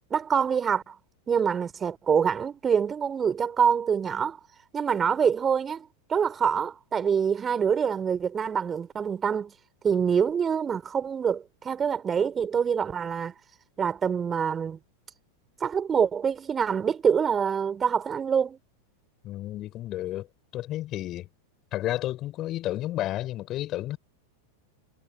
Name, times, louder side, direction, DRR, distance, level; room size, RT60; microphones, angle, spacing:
voice 1, 0.1-0.9 1.3-4.4 4.7-9.5 9.8-13.3 13.8-14.8 15.6-18.6, right 7 dB, 20° right, 4.2 m, -25 dB
voice 2, 19.2-20.3 20.5-21.3 21.7-24.0, left 14 dB, 35° left, 5.5 m, -31 dB
figure-of-eight pair, 90°, 0 cm